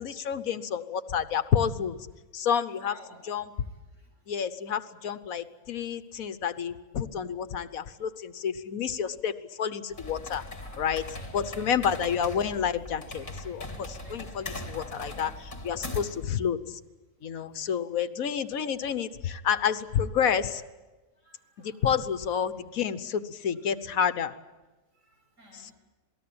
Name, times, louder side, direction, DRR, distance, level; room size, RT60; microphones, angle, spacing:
voice 1, 0.0-2.0 2.3-2.9 3.3-3.5 4.3-10.4 10.8-11.0 11.3-16.8 17.2-20.6 21.6-24.3 25.5-25.7, left 8 dB, 75° left, 11 dB, 1.4 m, -29 dB
voice 2, 2.8-3.3 3.9-4.1 11.0-11.6 14.0-14.7 21.2-21.8 24.9-25.7, equal, 60° right, 0 dB, 8.5 m, -53 dB
sound 1, 9.9-16.2, left 2 dB, 35° left, 3.5 m, -40 dB
27.5 x 19.0 x 8.7 m, 1.2 s
omnidirectional pair, 1.5 m